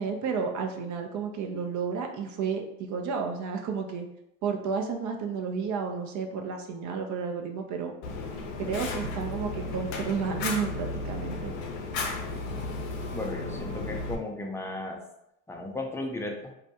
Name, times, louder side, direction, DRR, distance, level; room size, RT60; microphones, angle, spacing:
voice 1, 0.0-4.1 4.4-7.9 8.6-11.5, right 5 dB, 55° right, 4 dB, 0.6 m, -32 dB
Fire, 8.0-14.2, left 3 dB, 75° left, 0.5 m, -34 dB
voice 2, 13.1-15.0 15.5-16.5, left 2 dB, 5° left, 1 dB, 0.5 m, -35 dB
2.3 x 2.1 x 2.8 m, 0.80 s
hypercardioid pair, 60°, 36 cm